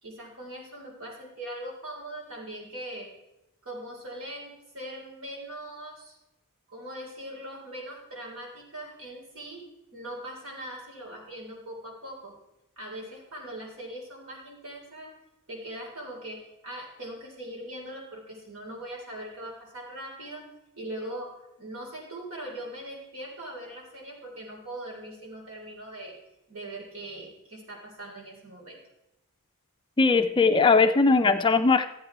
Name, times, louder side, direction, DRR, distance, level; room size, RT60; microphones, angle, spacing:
voice 1, 0.0-3.1 3.6-6.2 6.7-9.6 9.9-12.3 12.8-15.1 15.5-20.5 20.8-26.2 26.5-28.8, right 1 dB, 65° right, -2 dB, 3.6 m, -41 dB
voice 2, 30.0-31.9, left 4 dB, 20° left, 8 dB, 0.4 m, -20 dB
13.0 x 8.7 x 4.6 m, 0.90 s
head